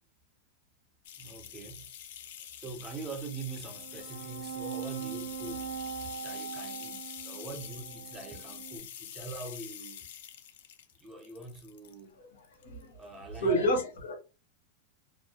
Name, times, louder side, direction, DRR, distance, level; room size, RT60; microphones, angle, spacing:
sound 1, 1.0-12.0 12.4-13.0 13.3-13.4, left 9 dB, 55° left, 0.3 m, -46 dB
voice 1, 1.2-1.9 2.6-5.7 6.2-10.1 11.0-12.2 13.0-13.7, right 3 dB, 10° right, 0.5 m, -43 dB
sound 2, 3.8-8.8, right 8 dB, 75° right, 0.4 m, -41 dB
voice 2, 12.2-13.0 13.3-14.1, equal, 85° left, 1.0 m, -30 dB
2.3 x 2.1 x 2.7 m
supercardioid pair, 170°, 0 cm